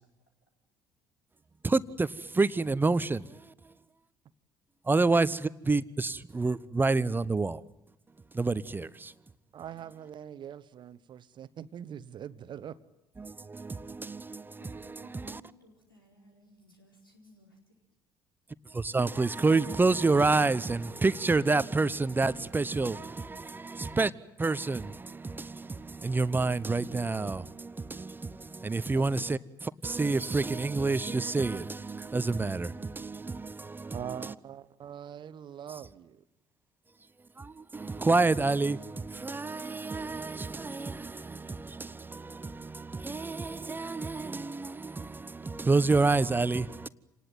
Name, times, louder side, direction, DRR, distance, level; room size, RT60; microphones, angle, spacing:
voice 1, 1.6-2.1 2.4-3.5 4.9-7.6 8.3-9.1 13.2-15.4 18.7-24.1 24.4-34.3 37.4-46.9, right 3 dB, 15° right, 0.9 m, -29 dB
voice 2, 9.5-12.8 23.9-24.1 28.9-29.1 33.9-36.2, right 9 dB, 45° right, 1.1 m, -43 dB
voice 3, 14.6-17.6, equal, 90° left, 4.6 m, -59 dB
27.5 x 19.5 x 9.2 m
figure-of-eight pair, 55°, 11 cm